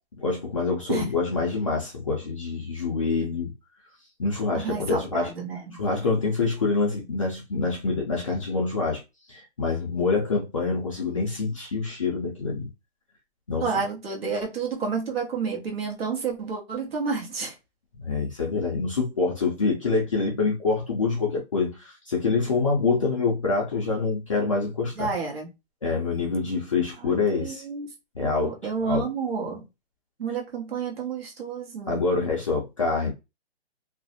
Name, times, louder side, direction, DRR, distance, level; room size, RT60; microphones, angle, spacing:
voice 1, 0.2-3.5 4.2-5.3 5.7-9.0 9.3-12.7 13.5-13.7 18.0-25.1 25.8-27.6 28.1-28.5 28.9-29.0 31.9-33.1, left 4 dB, 30° left, 0.4 m, -26 dB
voice 2, 4.5-5.8 13.6-17.5 25.0-25.5 27.0-27.9 28.2-29.7 30.2-32.0, right 5 dB, 60° right, 1.0 m, -30 dB
2.4 x 2.0 x 2.6 m
hypercardioid pair, 165°, 33 cm